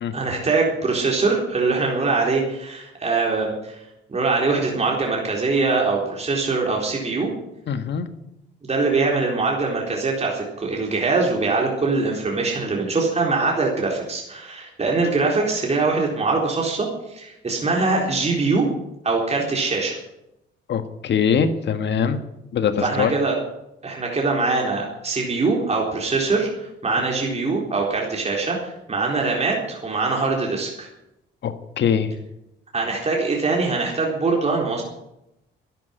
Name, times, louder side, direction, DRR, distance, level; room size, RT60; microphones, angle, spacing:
voice 1, 0.1-3.8 4.1-7.3 8.7-18.7 19.0-20.0 22.8-23.4 23.8-30.9 32.7-34.8, right 3 dB, 35° right, -1 dB, 4.0 m, -23 dB
voice 2, 7.7-8.1 20.7-22.2 22.5-23.1 31.4-32.1, left 7 dB, 60° left, 10 dB, 1.7 m, -22 dB
12.5 x 10.5 x 9.9 m, 0.86 s
cardioid pair, 90°, 20 cm